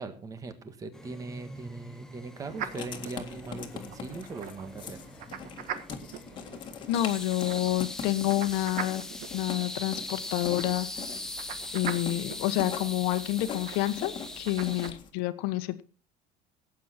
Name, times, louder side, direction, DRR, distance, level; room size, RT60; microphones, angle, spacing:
voice 1, 0.0-5.0, right 3 dB, 20° right, 10 dB, 1.6 m, -40 dB
sound 1, 0.9-14.9, left 1 dB, 5° left, 0.9 m, -41 dB
sound 2, 2.5-14.9, right 9 dB, 50° right, 1.5 m, -43 dB
Writing, 2.6-15.1, left 6 dB, 30° left, 1.9 m, -42 dB
voice 2, 6.9-9.0 9.3-10.9 11.4-15.8, left 16 dB, 65° left, 11 dB, 1.4 m, -29 dB
17.5 x 8.4 x 4.4 m, 0.35 s
cardioid pair, 170°, 17 cm